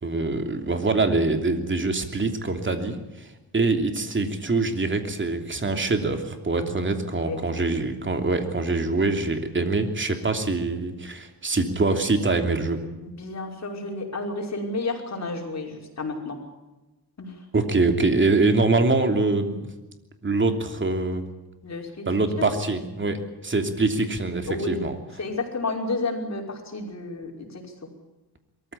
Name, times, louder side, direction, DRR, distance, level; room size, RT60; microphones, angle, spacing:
voice 1, 0.0-12.8 17.5-19.6 20.2-21.2 22.0-25.0, right 3 dB, 30° right, 6 dB, 3.0 m, -24 dB
voice 2, 7.3-7.6 13.0-16.4 17.2-17.3 21.6-22.0 22.4-22.5 24.5-24.8 25.2-27.6, left 3 dB, 45° left, 2 dB, 5.4 m, -31 dB
22.5 x 15.0 x 9.9 m, 1.1 s
cardioid pair, 85°, 37 cm